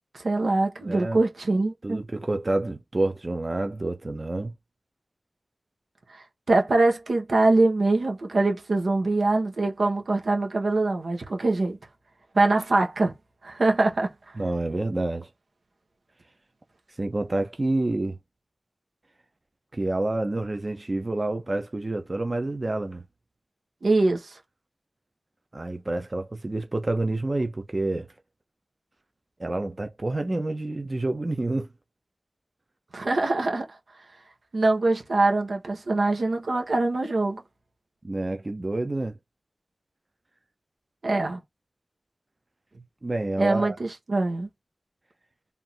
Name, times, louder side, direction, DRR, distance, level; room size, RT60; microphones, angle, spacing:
voice 1, 0.1-2.0 6.1-11.8 12.3-13.1 13.4-14.1 23.8-24.3 32.9-33.7 34.5-37.4 41.0-41.4 43.4-44.5, right 2 dB, 85° right, 1.2 m, -23 dB
voice 2, 0.8-1.2 1.8-4.5 14.4-15.3 17.0-18.2 19.7-23.0 25.5-28.1 29.4-31.7 38.0-39.2 43.0-43.8, right 2 dB, 45° right, 0.8 m, -28 dB
3.6 x 2.7 x 4.5 m
wide cardioid pair, 45°, 0 cm